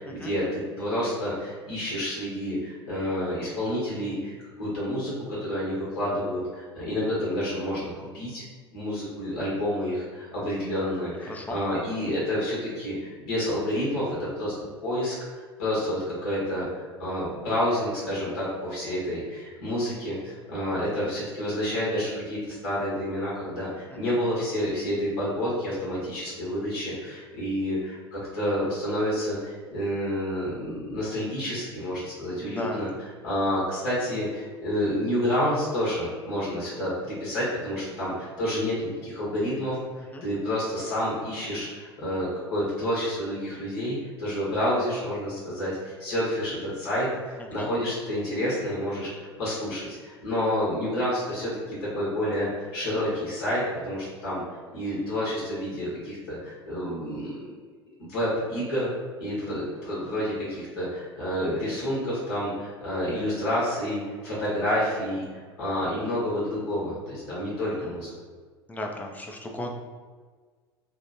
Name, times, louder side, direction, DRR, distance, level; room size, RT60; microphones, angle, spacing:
voice 1, 0.0-4.3 4.6-8.4 8.7-14.5 14.8-32.9 33.2-39.8 40.2-54.4 54.7-57.4 58.0-58.9 59.2-68.1, equal, 65° left, -7 dB, 1.2 m, -29 dB
voice 2, 11.3-11.6 24.1-24.2 32.4-32.8 40.1-40.3 47.4-47.7 67.8-67.9 68.7-69.7, left 1 dB, 10° left, 2 dB, 0.4 m, -36 dB
2.9 x 2.1 x 2.6 m, 1.5 s
figure-of-eight pair, 75°, 14 cm